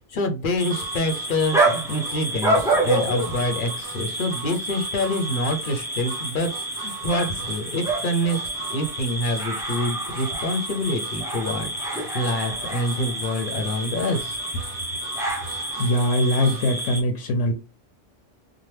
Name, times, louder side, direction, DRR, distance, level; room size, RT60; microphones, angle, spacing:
voice 1, 0.1-6.5 6.8-8.4 8.7-11.7 12.1-14.4, left 1 dB, 55° left, 5 dB, 0.7 m, -26 dB
sound 1, 0.5-17.0, right 2 dB, 5° right, 0.4 m, -28 dB
Harmonica, 0.7-16.7, right 7 dB, 70° right, 0.9 m, -41 dB
voice 2, 15.8-17.5, left 1 dB, 90° left, 3 dB, 0.9 m, -22 dB
2.9 x 2.1 x 3.2 m, 0.30 s
omnidirectional pair, 1.2 m